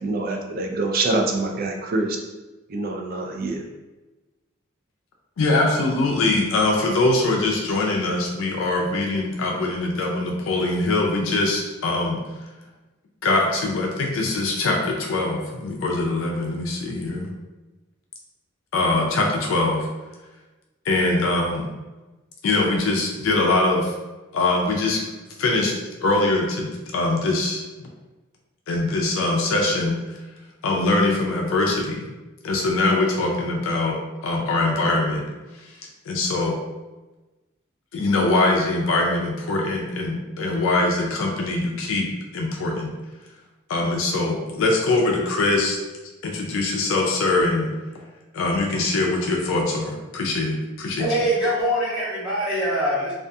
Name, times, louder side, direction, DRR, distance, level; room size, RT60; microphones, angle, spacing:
voice 1, 0.0-2.2 2.7-3.6, right 2 dB, 45° right, 2 dB, 0.3 m, -25 dB
voice 2, 5.4-12.2 13.2-17.3 18.7-19.9 20.9-21.7 22.4-23.9 24.3-25.0 25.4-25.7 26.0-27.6 28.7-30.0 30.6-32.0 32.4-35.2 36.1-36.6 37.9-42.9 43.7-45.8 46.2-47.7 48.3-51.1, left 2 dB, 70° left, 0 dB, 0.4 m, -22 dB
voice 3, 51.0-53.1, equal, 5° right, -13 dB, 0.9 m, -23 dB
2.4 x 2.3 x 2.6 m, 1.1 s
head